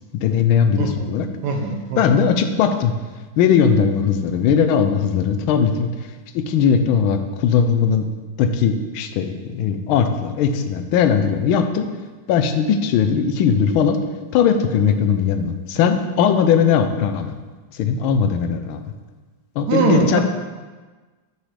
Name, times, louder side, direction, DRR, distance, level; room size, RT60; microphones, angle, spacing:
voice 1, 0.2-1.3 2.0-2.9 3.4-5.9 6.3-8.1 8.4-11.9 12.3-14.0 14.3-17.3 17.7-18.8 19.6-20.2, left 7 dB, 90° left, 7 dB, 1.4 m, -19 dB
voice 2, 0.8-1.1 1.4-2.0 19.7-20.2, right 4 dB, 65° right, 3 dB, 1.2 m, -21 dB
7.4 x 6.9 x 3.2 m, 1.3 s
omnidirectional pair, 2.2 m